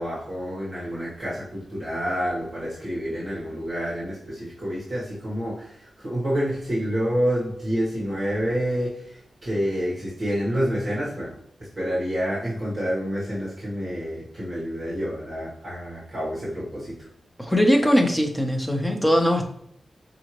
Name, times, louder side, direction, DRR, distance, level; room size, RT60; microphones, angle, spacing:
voice 1, 0.0-17.1, equal, 30° right, -8 dB, 1.3 m, -28 dB
voice 2, 17.4-19.4, equal, 5° left, 3 dB, 0.6 m, -20 dB
4.7 x 2.7 x 3.0 m, 0.71 s
wide cardioid pair, 170°, 0 cm